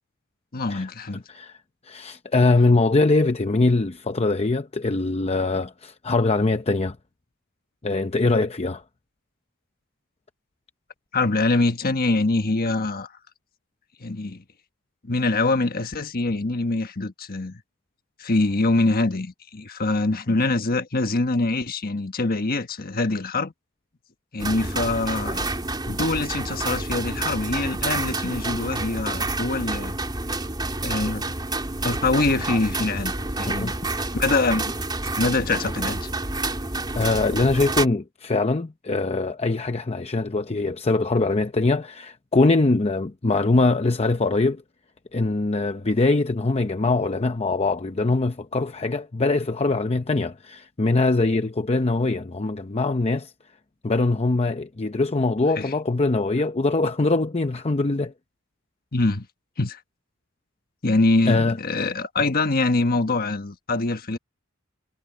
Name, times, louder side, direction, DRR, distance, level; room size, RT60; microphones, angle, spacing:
voice 1, 0.5-1.2 11.1-13.1 14.0-14.4 15.0-17.6 18.2-23.5 24.3-25.5 25.9-29.9 30.8-31.3 31.8-33.1 33.4-33.7 34.1-34.6 35.1-36.1 55.6-55.7 58.9-59.3 59.6-59.8 60.8-64.2, left 2 dB, 45° left, 1.4 m, -24 dB
voice 2, 1.8-7.0 7.8-8.8 33.6-33.7 36.9-44.6 45.1-53.3 53.8-58.1 61.3-61.6, left 3 dB, 30° left, 0.7 m, -22 dB
sound 1, 24.4-37.9, right 2 dB, 20° right, 3.1 m, -28 dB
head